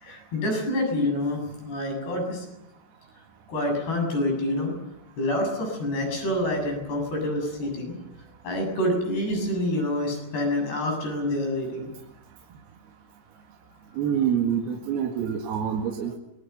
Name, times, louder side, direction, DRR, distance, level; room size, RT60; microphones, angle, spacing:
voice 1, 0.0-1.4 1.6-2.4 3.5-4.7 5.2-7.9 8.4-11.9, left 1 dB, 65° left, 3 dB, 9.4 m, -27 dB
voice 2, 13.9-16.2, right 8 dB, 65° right, 1 dB, 3.7 m, -26 dB
25.5 x 22.0 x 7.1 m, 0.85 s
omnidirectional pair, 5.1 m